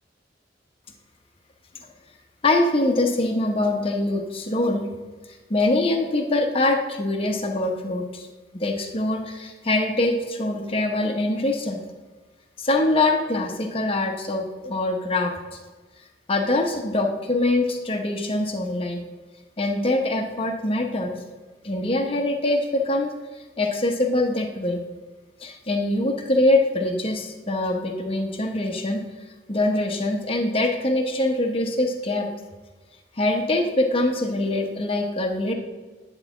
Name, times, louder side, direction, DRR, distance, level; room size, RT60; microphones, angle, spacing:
voice 1, 2.4-4.8 5.5-8.3 8.5-11.8 12.6-15.3 16.3-19.0 19.6-21.2 21.6-23.1 23.6-24.8 25.4-29.0 29.5-32.3 33.2-35.5, left 2 dB, 35° left, 2 dB, 1.0 m, -23 dB
10.5 x 4.9 x 7.0 m, 1.3 s
head